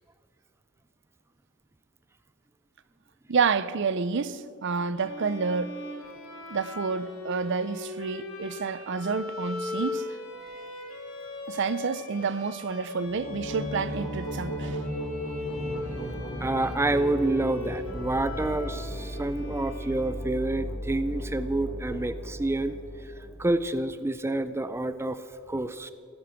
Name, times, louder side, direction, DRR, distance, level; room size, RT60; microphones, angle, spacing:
voice 1, 3.3-5.8 6.5-10.1 11.5-14.9 19.5-19.6, right 5 dB, 60° right, 0.6 m, -29 dB
sound 1, 4.9-20.6, left 3 dB, 85° left, 4.6 m, -39 dB
voice 2, 10.4-11.0 16.4-22.8 23.0-25.2 25.5-25.9, right 2 dB, 10° right, 0.5 m, -28 dB
sound 2, 13.0-23.6, equal, 65° left, 3.9 m, -36 dB
16.5 x 10.5 x 7.7 m
head